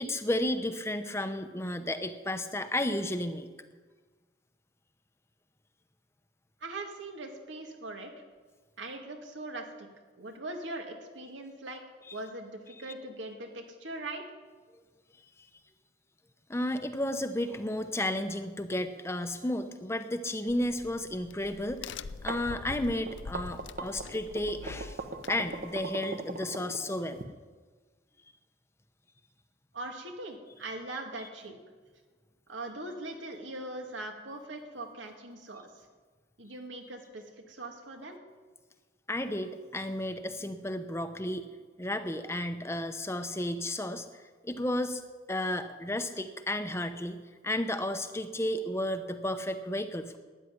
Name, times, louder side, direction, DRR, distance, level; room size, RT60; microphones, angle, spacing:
voice 1, 0.0-3.5 12.1-12.2 16.5-25.0 25.3-27.2 39.1-41.5 41.8-45.0 45.3-50.2, left 1 dB, 15° left, 8 dB, 0.8 m, -33 dB
voice 2, 6.6-8.1 8.8-9.9 10.2-11.8 12.1-14.2 29.7-31.5 32.5-35.9 36.4-38.2, right 2 dB, 85° right, 3 dB, 2.3 m, -41 dB
Crack, 20.5-25.9, left 5 dB, 75° left, 0.5 m, -45 dB
sound 1, 22.0-27.2, right 2 dB, 50° right, 1.0 m, -39 dB
13.0 x 9.9 x 9.8 m, 1.4 s
head